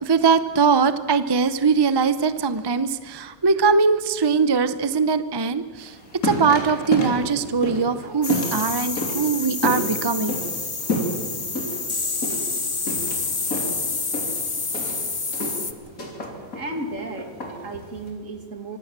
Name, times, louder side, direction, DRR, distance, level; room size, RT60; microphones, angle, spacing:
voice 1, 0.0-6.0 6.2-10.4, right 5 dB, 30° right, 13 dB, 0.4 m, -21 dB
sound 1, 5.8-18.1, left 1 dB, 60° left, 3.9 m, -31 dB
sound 2, 8.2-15.7, left 4 dB, 25° left, 0.9 m, -28 dB
voice 2, 16.5-18.8, right 2 dB, 55° right, 6 dB, 2.5 m, -34 dB
24.5 x 16.5 x 7.5 m, 1.5 s
omnidirectional pair, 1.7 m